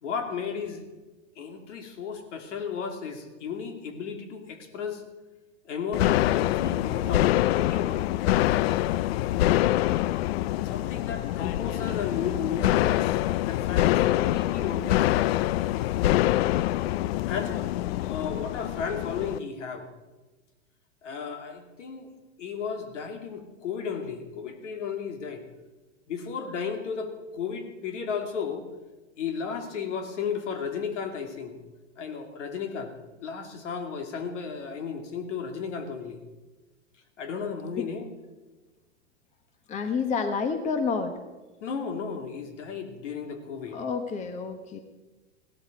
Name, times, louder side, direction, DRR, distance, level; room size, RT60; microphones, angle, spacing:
voice 1, 0.0-0.8 1.4-5.0 5.6-8.1 10.6-15.1 17.3-17.6 18.0-19.9 21.0-22.1 22.4-25.4 26.1-28.6 29.2-31.5 32.0-32.9 33.2-36.2 37.2-38.1 41.6-43.8, left 6 dB, 70° left, 6 dB, 2.7 m, -34 dB
sound 1, 5.9-19.4, left 14 dB, 55° left, 0.4 m, -25 dB
voice 2, 39.7-41.1 43.7-44.8, left 5 dB, 20° left, 8 dB, 1.0 m, -29 dB
16.5 x 12.5 x 5.2 m, 1.2 s
hypercardioid pair, 140°, 37 cm